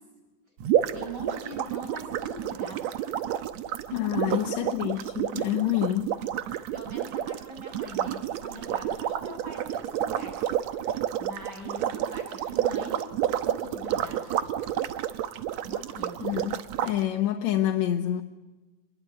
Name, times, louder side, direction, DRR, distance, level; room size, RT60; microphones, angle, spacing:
sound 1, 0.6-16.9, right 11 dB, 70° right, 2.1 m, -30 dB
voice 1, 0.9-2.8 4.2-4.8 6.7-13.1 13.4-14.5 15.6-16.2, right 1 dB, 30° right, 1 dB, 8.0 m, -42 dB
voice 2, 3.9-6.2 16.2-16.6 16.8-18.2, left 12 dB, 70° left, 3 dB, 2.3 m, -27 dB
26.5 x 21.0 x 8.4 m, 1.2 s
omnidirectional pair, 3.5 m